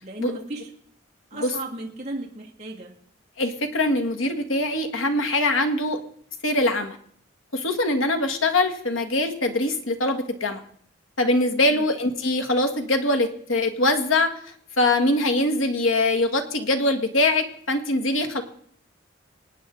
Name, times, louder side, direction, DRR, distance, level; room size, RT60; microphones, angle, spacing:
voice 1, 0.0-0.7 1.3-2.9 11.7-11.9, right 2 dB, 35° right, -3 dB, 2.2 m, -35 dB
voice 2, 3.4-6.0 6.4-7.0 7.5-10.6 11.2-14.3 14.8-18.4, left 2 dB, 85° left, 6 dB, 1.6 m, -23 dB
25.0 x 9.4 x 3.8 m, 0.64 s
head